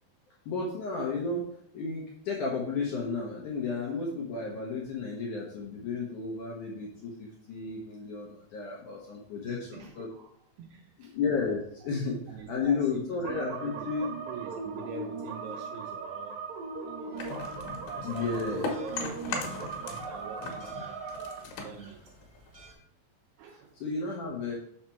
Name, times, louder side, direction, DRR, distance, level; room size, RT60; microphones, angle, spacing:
voice 1, 0.5-1.4 1.7-10.1 11.0-14.1 18.0-18.7 23.8-24.5, left 4 dB, 80° left, -2 dB, 1.8 m, -33 dB
voice 2, 9.4-10.3 10.6-11.2 12.3-16.4 16.8-17.6 17.9-19.1 19.5-22.0 23.4-23.8, right 7 dB, 80° right, 2 dB, 2.4 m, -45 dB
sound 1, 13.2-21.4, right 4 dB, 65° right, 2.4 m, -38 dB
sound 2, 17.1-22.7, right 2 dB, 45° right, 0.9 m, -57 dB
sound 3, 17.2-20.1 20.4-22.8, left 4 dB, 65° left, 2.7 m, -38 dB
6.5 x 5.9 x 4.4 m, 0.65 s
omnidirectional pair, 5.2 m